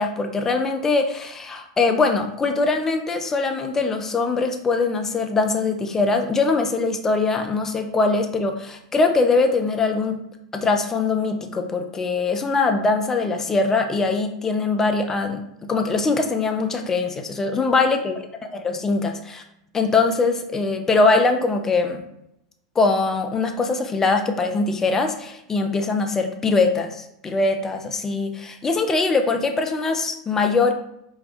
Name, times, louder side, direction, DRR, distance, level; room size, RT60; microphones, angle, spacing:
voice 1, 0.0-10.2 10.5-15.4 15.7-18.1 18.6-19.4 19.7-22.0 22.8-30.7, left 3 dB, 15° left, 4 dB, 0.4 m, -22 dB
2.4 x 2.3 x 3.5 m, 0.79 s
figure-of-eight pair, 85°, 3 cm